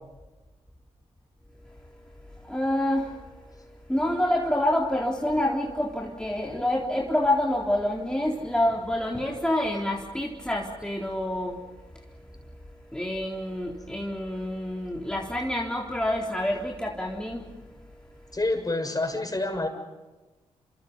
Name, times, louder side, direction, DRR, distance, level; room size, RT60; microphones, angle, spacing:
voice 1, 1.5-18.4, left 1 dB, 5° left, -2 dB, 3.9 m, -28 dB
voice 2, 18.3-19.7, left 2 dB, 30° left, 4 dB, 6.7 m, -27 dB
28.5 x 27.0 x 5.6 m, 1.2 s
hypercardioid pair, 40°, 13 cm